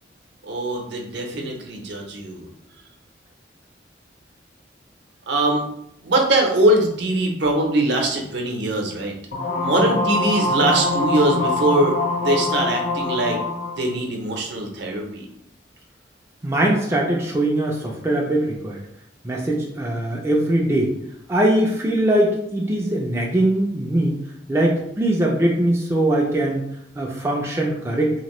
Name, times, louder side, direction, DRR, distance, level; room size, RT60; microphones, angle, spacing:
voice 1, 0.4-2.5 5.3-5.6 6.0-9.1 9.6-13.4 13.8-15.3, right 1 dB, 70° right, 1 dB, 0.6 m, -22 dB
sound 1, 9.3-13.8, left 2 dB, 50° left, 0.7 m, -23 dB
voice 2, 16.4-18.8 19.2-20.9 21.3-24.2 24.5-26.6 27.0-28.1, right 1 dB, 15° right, -2 dB, 0.3 m, -21 dB
2.9 x 2.5 x 3.0 m, 0.77 s
head